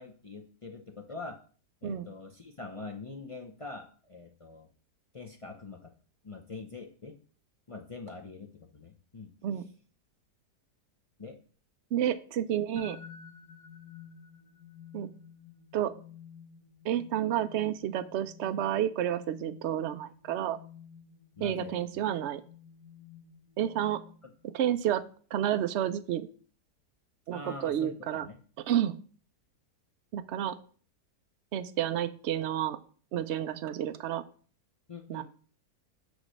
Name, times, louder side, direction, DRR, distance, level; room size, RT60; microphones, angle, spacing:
voice 1, 0.0-1.4 1.8-4.7 5.1-5.9 6.2-7.2 7.7-9.3 11.2-11.4 21.4-21.8 27.3-27.9 28.2-28.4 34.9-35.2, left 3 dB, 60° left, 2 dB, 0.3 m, -44 dB
voice 2, 11.9-13.0 14.9-15.1 15.7-15.9 16.8-20.6 21.4-22.4 23.6-24.0 24.5-25.0 25.3-26.3 27.3-28.3 28.7-29.0 30.1-30.5 31.5-32.8 33.1-34.2 35.1-35.2, right 11 dB, 75° right, 10 dB, 0.6 m, -30 dB
sound 1, 12.8-24.5, left 8 dB, 80° left, 1.6 m, -52 dB
8.2 x 3.1 x 6.4 m, 0.42 s
omnidirectional pair, 1.8 m